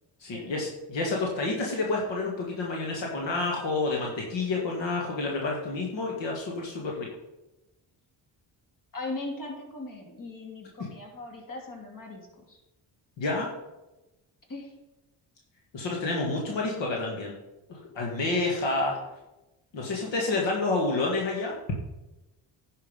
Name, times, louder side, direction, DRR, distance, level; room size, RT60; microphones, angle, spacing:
voice 1, 0.2-7.1 13.2-13.5 15.7-17.3 17.7-19.0 19.7-21.5, left 3 dB, 75° left, -1 dB, 1.9 m, -29 dB
voice 2, 8.9-12.6 14.5-14.7, left 2 dB, 45° left, 0 dB, 2.9 m, -39 dB
10.5 x 5.5 x 5.3 m, 1.0 s
supercardioid pair, 70°, 45 cm